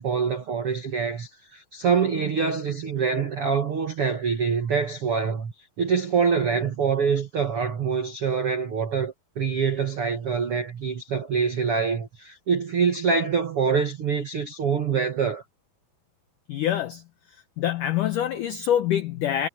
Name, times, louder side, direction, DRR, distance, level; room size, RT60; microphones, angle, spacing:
voice 1, 0.0-15.4, right 6 dB, 65° right, 1.4 m, -25 dB
voice 2, 16.5-17.0 17.3-19.5, left 10 dB, 75° left, 1.9 m, -25 dB
omnidirectional pair, 5.1 m